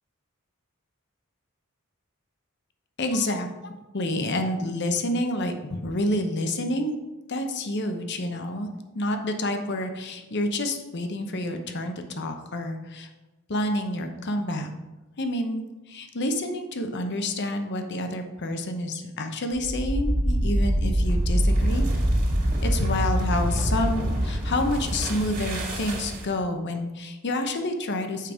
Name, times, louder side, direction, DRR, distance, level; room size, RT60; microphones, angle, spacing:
voice 1, 3.0-7.0 7.3-8.7 8.9-13.1 13.5-14.7 15.2-21.9 22.6-28.3, left 1 dB, 55° left, 6 dB, 0.8 m, -28 dB
sound 1, 19.6-26.4, right 1 dB, 40° right, 2.1 m, -25 dB
7.5 x 5.2 x 4.8 m, 1.1 s
head